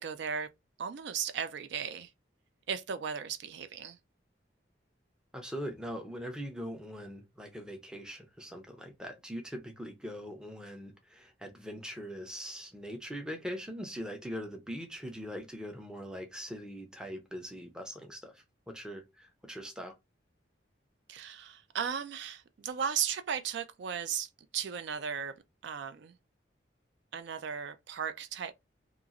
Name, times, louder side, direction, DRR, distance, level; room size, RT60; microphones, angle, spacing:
voice 1, 0.0-0.5 0.8-2.1 2.7-4.0 21.1-25.3 25.6-26.1 27.1-28.5, right 7 dB, 65° right, 0.4 m, -36 dB
voice 2, 5.3-20.0, equal, 5° right, 0.5 m, -42 dB
2.9 x 2.4 x 2.4 m
head